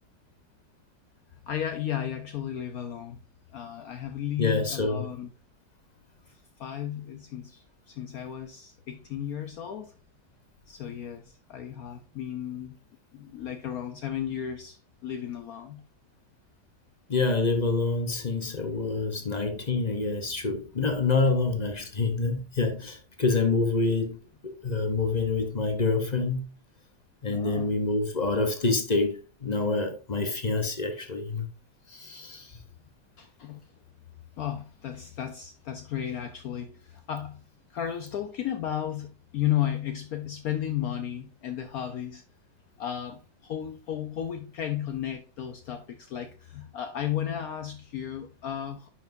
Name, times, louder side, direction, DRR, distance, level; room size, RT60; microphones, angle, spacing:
voice 1, 1.5-3.2 3.5-5.3 6.3-9.9 10.7-12.8 13.1-15.8 27.3-27.7 33.2-33.7 34.4-37.4 37.7-42.2 42.8-48.9, left 10 dB, 65° left, 1.0 m, -34 dB
voice 2, 4.4-5.1 17.1-24.2 24.4-26.4 27.2-31.5 31.9-32.5, left 3 dB, 35° left, 0.7 m, -27 dB
9.8 x 5.9 x 2.6 m
omnidirectional pair, 1.9 m